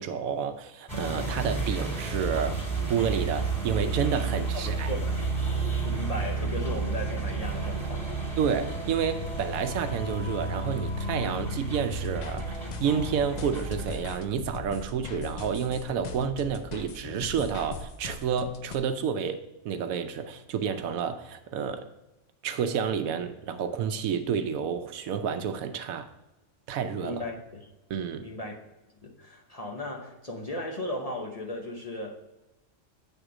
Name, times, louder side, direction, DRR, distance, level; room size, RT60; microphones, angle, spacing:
voice 1, 0.0-2.6 2.9-4.9 8.4-21.9 22.4-26.1 26.7-27.2 27.9-28.3, right 7 dB, 80° right, 1.0 m, -30 dB
sound 1, 0.9-14.0, right 3 dB, 5° left, 2.5 m, -31 dB
voice 2, 5.8-8.1 27.0-27.6 28.2-28.5 29.0-32.2, left 1 dB, 35° left, 0.8 m, -36 dB
sound 2, 11.9-18.8, left 4 dB, 80° left, 0.3 m, -40 dB
8.1 x 3.6 x 4.9 m
omnidirectional pair, 1.5 m